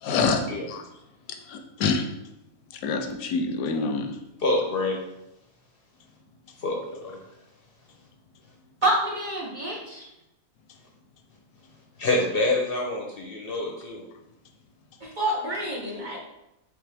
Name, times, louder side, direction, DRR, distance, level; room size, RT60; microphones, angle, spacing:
voice 1, 0.0-0.4 0.7-0.9 1.5-2.1 2.8-4.2, left 4 dB, 90° left, 6 dB, 1.1 m, -26 dB
voice 2, 4.4-5.0 6.6-7.2 12.0-14.0, left 2 dB, 55° left, 0 dB, 0.7 m, -26 dB
voice 3, 8.8-10.0 15.0-16.2, right 1 dB, 40° right, -3 dB, 0.8 m, -27 dB
4.4 x 3.6 x 3.3 m, 0.89 s
omnidirectional pair, 1.5 m